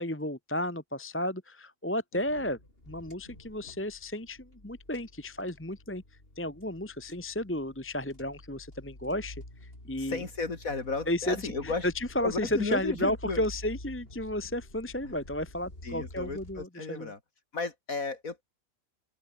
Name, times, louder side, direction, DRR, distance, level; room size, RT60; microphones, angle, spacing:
voice 1, 0.0-2.6 2.9-6.0 6.4-10.2 11.1-17.1, left 1 dB, 10° left, 1.4 m, -33 dB
sound 1, 2.2-16.7, left 1 dB, 40° left, 7.4 m, -49 dB
voice 2, 10.0-11.9 12.2-13.4 15.0-15.1 15.8-17.2 17.5-18.4, left 4 dB, 70° left, 3.3 m, -34 dB
open air
omnidirectional pair, 1.5 m